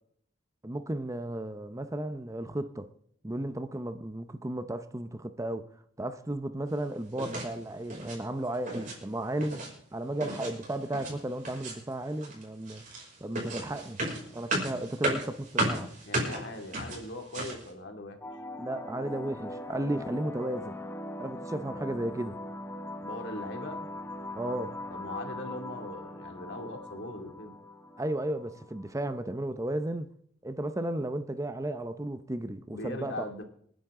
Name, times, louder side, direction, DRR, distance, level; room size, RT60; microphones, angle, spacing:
voice 1, 0.6-2.9 3.2-5.7 6.0-9.6 9.9-12.8 13.2-14.0 14.3-15.9 18.6-20.8 21.2-22.4 24.4-24.8 28.0-30.1 30.4-33.1, right 1 dB, 15° right, 0.6 m, -34 dB
sound 1, 7.1-7.5 7.8-8.2 8.5-9.0 9.2-9.7 10.2-11.2 11.4-11.9 12.2-17.7, right 1 dB, 40° right, 5.9 m, -34 dB
voice 2, 16.0-18.3 23.0-23.8 24.9-27.6 32.7-33.4, left 1 dB, 60° left, 2.4 m, -40 dB
sound 2, 18.2-29.2, left 1 dB, 10° left, 0.9 m, -41 dB
27.0 x 10.5 x 3.7 m
head